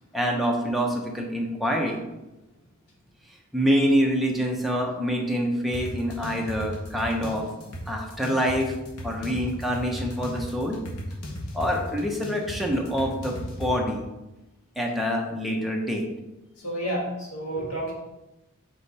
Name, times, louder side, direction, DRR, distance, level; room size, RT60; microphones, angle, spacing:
voice 1, 0.1-2.0 3.5-7.5 7.9-8.7 9.0-10.8 11.5-14.0 14.8-16.1, equal, ahead, -1 dB, 0.9 m, -26 dB
sound 1, 5.7-13.7, equal, 90° left, 1.3 m, -36 dB
voice 2, 16.6-17.9, right 1 dB, 75° left, -3 dB, 1.9 m, -30 dB
5.1 x 5.0 x 4.2 m, 0.99 s
head